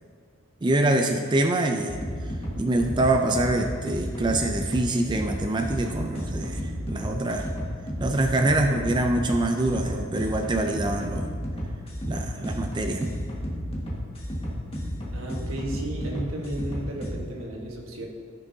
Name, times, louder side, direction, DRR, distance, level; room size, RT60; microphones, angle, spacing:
voice 1, 0.6-7.5 8.0-11.3 12.1-13.1, right 2 dB, 20° right, 4 dB, 0.4 m, -25 dB
sound 1, 1.9-17.1, equal, 30° left, 1.5 m, -33 dB
voice 2, 15.1-18.1, right 1 dB, 85° right, -1 dB, 1.4 m, -34 dB
14.5 x 6.1 x 2.7 m, 2.1 s
head